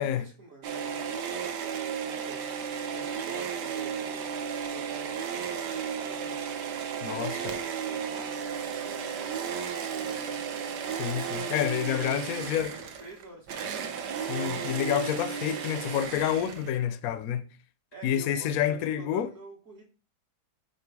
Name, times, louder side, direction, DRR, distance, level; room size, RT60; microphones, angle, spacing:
voice 1, 0.0-4.2 4.7-6.5 7.0-10.5 11.9-14.0 17.9-19.8, right 2 dB, 50° right, 1.5 m, -47 dB
sound 1, 0.6-16.9, right 7 dB, 75° right, 1.4 m, -34 dB
voice 2, 7.0-7.5 10.9-12.7 14.2-17.5 18.0-19.3, left 10 dB, 70° left, 0.9 m, -29 dB
5.9 x 3.8 x 4.6 m
omnidirectional pair, 1.8 m